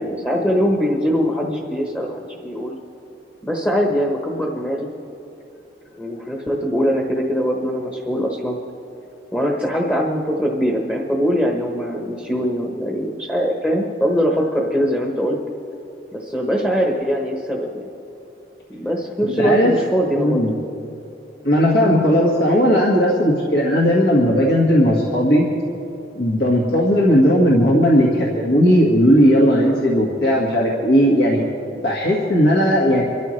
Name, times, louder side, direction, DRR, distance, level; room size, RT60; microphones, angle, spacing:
voice 1, 0.0-2.7 3.4-4.9 5.9-8.6 9.3-15.4 16.1-17.9 18.7-20.4, equal, 10° left, 0 dB, 1.1 m, -22 dB
voice 2, 19.2-19.7 20.1-20.5 21.4-25.5 26.2-31.4 31.8-33.0, equal, 70° left, -3 dB, 1.8 m, -16 dB
26.0 x 13.5 x 3.3 m, 2.9 s
head